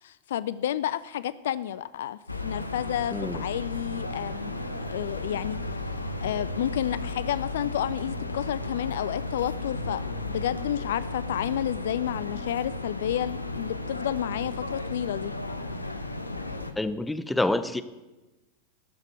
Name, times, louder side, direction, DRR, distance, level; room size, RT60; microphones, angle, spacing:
voice 1, 0.0-5.6 6.2-15.3, left 11 dB, 60° left, 17 dB, 0.4 m, -31 dB
sound 1, 2.3-16.7, left 2 dB, 85° left, 0.9 m, -34 dB
voice 2, 3.1-3.4 16.8-17.8, left 2 dB, 5° left, 12 dB, 0.7 m, -27 dB
13.0 x 6.6 x 9.3 m, 1.1 s
figure-of-eight pair, 90°, 0 cm